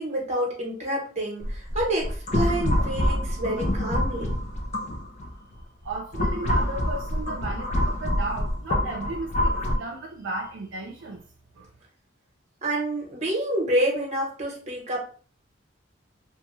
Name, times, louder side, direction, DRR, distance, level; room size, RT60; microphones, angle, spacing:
voice 1, 0.0-4.4 12.6-15.0, right 1 dB, 35° right, 0.9 m, -28 dB
sound 1, 1.4-5.3 5.8-9.7, left 1 dB, 35° left, 0.4 m, -26 dB
voice 2, 5.8-11.2 11.6-11.7, right 2 dB, 80° right, 0.5 m, -35 dB
2.9 x 2.2 x 3.0 m
head